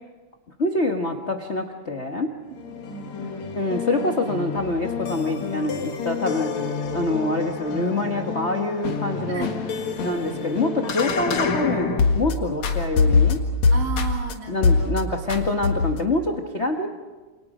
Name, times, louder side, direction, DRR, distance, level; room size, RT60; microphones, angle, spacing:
voice 1, 0.6-2.3 3.5-6.5 6.9-9.5 10.0-11.9 12.1-13.4 14.5-16.9, left 2 dB, 35° left, 3 dB, 1.0 m, -25 dB
sound 1, 2.6-12.3 12.6-14.3 14.6-15.0 15.3-16.1, left 4 dB, 65° left, 3.0 m, -25 dB
voice 2, 2.6-3.6 9.3-9.6 13.7-14.9, right 6 dB, 55° right, 3 dB, 3.2 m, -35 dB
28.5 x 28.0 x 5.0 m, 1.3 s
omnidirectional pair, 3.5 m